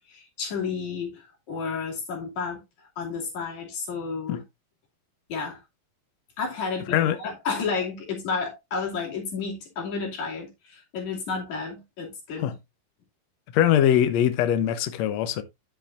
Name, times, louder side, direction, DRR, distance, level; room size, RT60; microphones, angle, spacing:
voice 1, 0.1-4.4 5.3-5.6 6.4-12.5, left 5 dB, 55° left, 3.8 m, -32 dB
voice 2, 13.5-15.4, left 10 dB, 90° left, 1.5 m, -22 dB
10.0 x 7.5 x 2.6 m
omnidirectional pair, 4.3 m